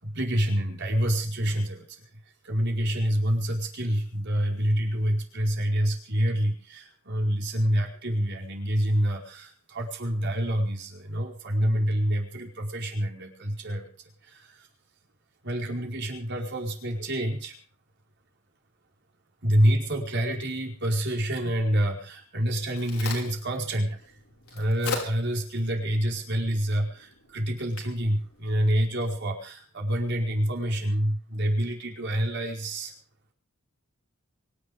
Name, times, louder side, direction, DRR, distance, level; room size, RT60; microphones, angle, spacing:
voice 1, 0.0-1.8 2.4-13.9 14.3-14.6 15.4-17.5 19.4-24.0 24.5-32.9, equal, 55° right, 1 dB, 4.8 m, -27 dB
Crack, 22.3-29.3, left 4 dB, 85° left, 5.5 m, -41 dB
24.5 x 11.0 x 5.0 m, 0.41 s
head